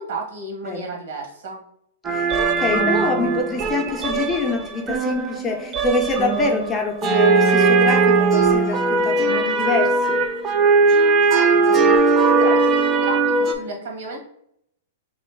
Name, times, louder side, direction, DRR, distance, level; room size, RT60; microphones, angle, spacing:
voice 1, 0.0-1.6 11.2-11.8 12.1-14.2, right 3 dB, 70° right, 2 dB, 1.4 m, -32 dB
sound 1, 2.0-13.5, right 4 dB, 25° right, 0.5 m, -19 dB
voice 2, 2.1-10.2, left 3 dB, 15° left, 2 dB, 0.6 m, -25 dB
3.1 x 2.7 x 4.5 m, 0.70 s
hypercardioid pair, 155°, 0 cm